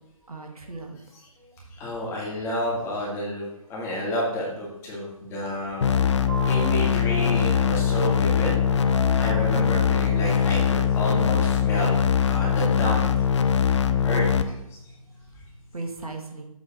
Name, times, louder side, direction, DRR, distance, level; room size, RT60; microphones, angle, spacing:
voice 1, 0.3-1.7 14.8-16.4, right 2 dB, 80° right, 3 dB, 1.4 m, -40 dB
voice 2, 1.7-5.9 6.4-8.6 9.2-13.3 14.0-14.2 14.7-14.8, left 1 dB, 15° left, -4 dB, 2.0 m, -30 dB
sound 1, 5.3-10.9, right 6 dB, 35° right, 1.0 m, -40 dB
sound 2, 5.8-14.4, left 7 dB, 55° left, 0.6 m, -22 dB
7.9 x 3.9 x 6.1 m, 0.89 s
figure-of-eight pair, 145°, 18 cm